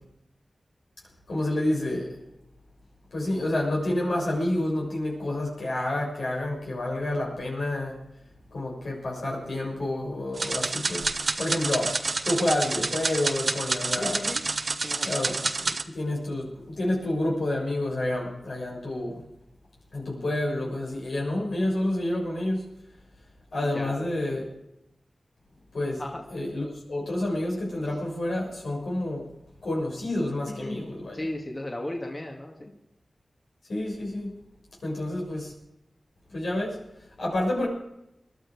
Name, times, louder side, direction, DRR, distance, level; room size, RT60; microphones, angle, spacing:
voice 1, 1.3-2.2 3.1-8.0 8.5-11.1 11.4-12.0 12.2-14.2 15.0-19.1 19.9-22.6 23.5-24.5 25.7-26.0 26.3-29.3 29.6-31.1 33.7-34.4 34.8-35.5 36.3-36.8 37.2-37.7, left 1 dB, 85° left, -3 dB, 6.7 m, -29 dB
sound 1, 10.4-15.8, right 3 dB, 60° right, 1.0 m, -28 dB
voice 2, 13.9-14.4 14.7-15.3 15.9-16.0 23.6-24.2 26.0-26.2 30.6-32.7, left 1 dB, 40° left, 1 dB, 2.2 m, -36 dB
21.5 x 12.0 x 4.9 m, 0.85 s
cardioid pair, 45°, 0 cm